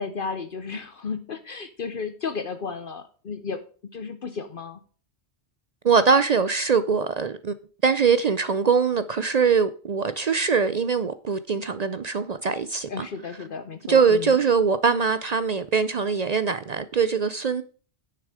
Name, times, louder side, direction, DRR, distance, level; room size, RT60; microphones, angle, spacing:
voice 1, 0.0-3.6 3.9-4.8 12.9-14.4, left 5 dB, 55° left, 0.9 m, -33 dB
voice 2, 5.8-7.5 7.8-13.1 13.9-17.6, right 5 dB, 50° right, 0.5 m, -22 dB
9.9 x 6.8 x 4.9 m
omnidirectional pair, 1.1 m